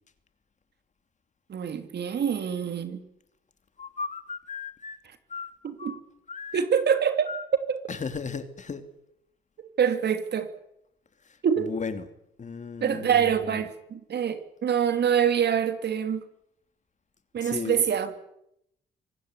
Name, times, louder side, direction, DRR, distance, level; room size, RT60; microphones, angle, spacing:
voice 1, 1.5-3.0 5.6-6.0 6.5-7.3 7.7-7.8 9.8-10.5 11.4-11.7 12.8-16.2 17.3-18.2, right 8 dB, 55° right, 9 dB, 3.0 m, -25 dB
voice 2, 3.8-5.0 5.3-5.5 5.8-6.0 6.3-6.7 7.2-7.5 7.9-8.9 11.2-12.1 12.4-13.7 17.4-17.8, left 5 dB, 35° left, 9 dB, 2.8 m, -36 dB
25.5 x 18.0 x 9.7 m, 0.77 s
cardioid pair, 90°, 20 cm